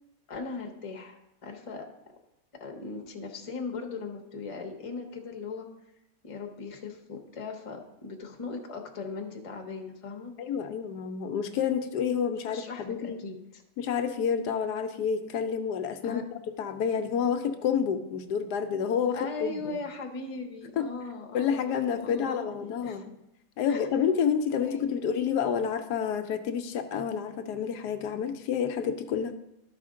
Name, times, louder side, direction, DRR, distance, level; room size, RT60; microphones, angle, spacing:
voice 1, 0.3-1.9 2.6-5.7 6.2-10.3 12.5-13.6 16.0-16.2 19.1-23.0 23.7-23.8 24.6-24.9, left 4 dB, 25° left, 2 dB, 0.9 m, -39 dB
voice 2, 10.4-13.2 13.8-19.8 20.8-20.9 21.3-23.2 23.6-29.3, left 7 dB, 80° left, 7 dB, 1.2 m, -29 dB
12.5 x 5.0 x 3.7 m, 0.86 s
omnidirectional pair, 1.7 m